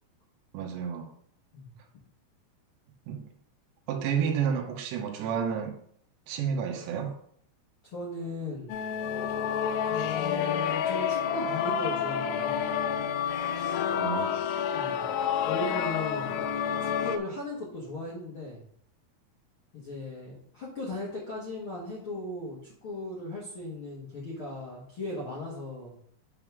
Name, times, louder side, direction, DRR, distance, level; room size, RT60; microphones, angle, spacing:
voice 1, 0.5-1.1 3.1-3.2 3.9-5.7 6.3-7.2 14.0-14.4, right 7 dB, 90° right, 3 dB, 3.1 m, -30 dB
voice 2, 7.9-8.7 9.9-12.6 14.7-15.0 15.4-16.4 16.8-18.6 19.7-26.0, left 2 dB, 65° left, -6 dB, 1.3 m, -37 dB
sound 1, 8.7-17.2, left 8 dB, 85° left, 2.2 m, -29 dB
8.9 x 3.6 x 6.0 m, 0.64 s
omnidirectional pair, 4.9 m